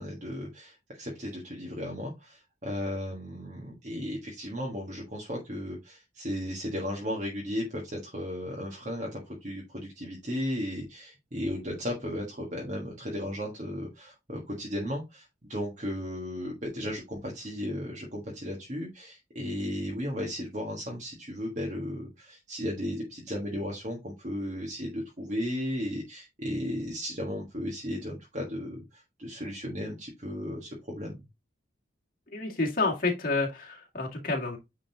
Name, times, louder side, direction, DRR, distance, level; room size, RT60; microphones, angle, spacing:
voice 1, 0.0-31.2, equal, 40° right, 1.4 m, -35 dB
voice 2, 32.3-34.6, left 3 dB, 50° left, 2.0 m, -29 dB
9.0 x 3.9 x 2.8 m
head